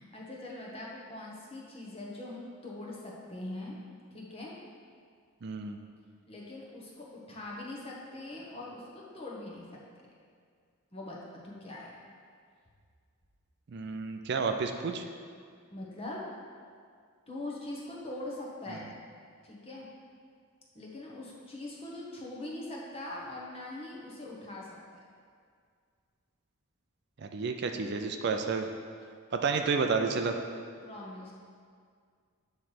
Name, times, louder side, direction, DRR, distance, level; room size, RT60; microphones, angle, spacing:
voice 1, 0.0-3.8 4.1-4.5 6.3-9.7 10.9-11.9 15.7-16.3 17.3-18.9 19.4-19.9 20.7-25.0 30.8-31.3, left 1 dB, 25° left, -4 dB, 1.1 m, -42 dB
voice 2, 5.4-5.8 13.7-15.0 18.7-18.8 27.2-28.7 29.3-30.4, right 4 dB, 50° right, 5 dB, 0.4 m, -30 dB
9.1 x 3.2 x 5.8 m, 2.1 s
head